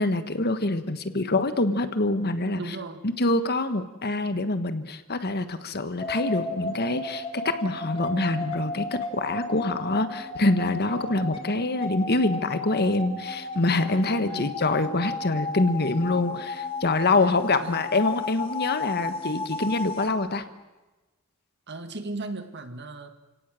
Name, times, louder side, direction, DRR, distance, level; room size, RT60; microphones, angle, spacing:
voice 1, 0.0-2.8 3.0-20.4, left 2 dB, 45° left, 11 dB, 1.4 m, -25 dB
voice 2, 2.6-3.0 14.3-14.6 17.6-17.8 21.7-23.1, right 2 dB, 50° right, 8 dB, 2.0 m, -36 dB
sound 1, 6.0-20.1, left 3 dB, 25° left, 2.6 m, -34 dB
29.5 x 17.5 x 7.7 m, 1.1 s
head